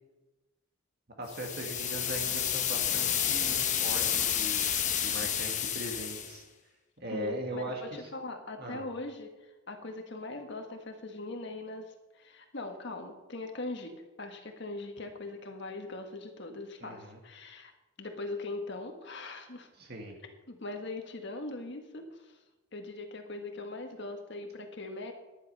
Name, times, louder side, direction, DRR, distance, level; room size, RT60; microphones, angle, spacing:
voice 1, 1.2-4.7 5.0-6.4 7.0-7.8 8.6-8.8 16.8-17.2 19.8-20.1, right 1 dB, 45° right, 1 dB, 1.8 m, -39 dB
sound 1, 1.3-6.3, left 9 dB, 35° left, 1.0 m, -30 dB
voice 2, 7.1-13.9 14.2-17.7 18.0-19.7 20.5-22.4 22.7-25.1, left 2 dB, 55° left, 4 dB, 1.7 m, -41 dB
11.0 x 10.5 x 5.5 m, 1.1 s
head